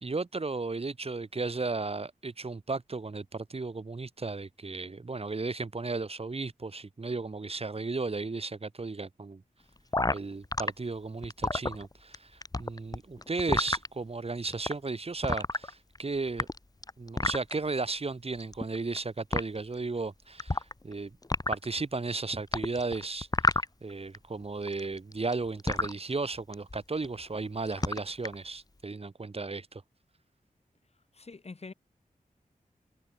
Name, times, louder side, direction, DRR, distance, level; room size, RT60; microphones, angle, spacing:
voice 1, 0.0-9.4 10.1-12.3 12.6-16.5 17.0-21.1 21.5-23.3 23.8-29.8, right 3 dB, 40° right, 2.9 m, -34 dB
sound 1, 9.9-10.7 11.2-12.2 12.4-13.9 14.5-14.7 15.2-16.0 16.3-17.5 18.4-19.0 19.3-19.4 20.4-20.9 21.2-21.7 22.5-24.2 24.4-25.9 26.5-26.8 27.0-27.4 27.7-28.3, left 2 dB, 25° left, 2.2 m, -29 dB
voice 2, 31.1-31.7, left 3 dB, 45° left, 3.3 m, -44 dB
wide cardioid pair, 115°, 15 cm